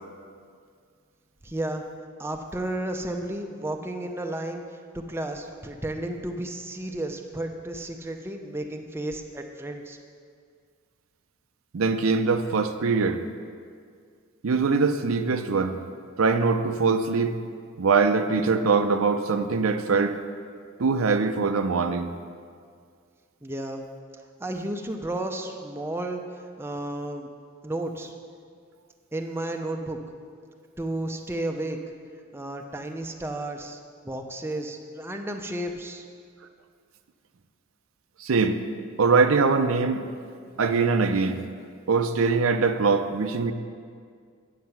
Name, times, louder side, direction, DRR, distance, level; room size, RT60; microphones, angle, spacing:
voice 1, 1.4-1.8 2.2-4.6 4.9-10.0 23.4-23.8 24.4-26.2 26.6-27.3 27.6-28.1 29.1-30.0 30.8-31.8 32.3-33.8 34.0-36.0, right 1 dB, 10° right, 4 dB, 0.5 m, -32 dB
voice 2, 11.7-13.2 14.4-15.8 16.2-17.4 17.8-20.2 20.8-22.1 38.2-38.6 39.0-40.1 40.6-41.4 41.9-43.5, right 4 dB, 75° right, 8 dB, 0.5 m, -22 dB
9.4 x 6.5 x 5.8 m, 2.1 s
head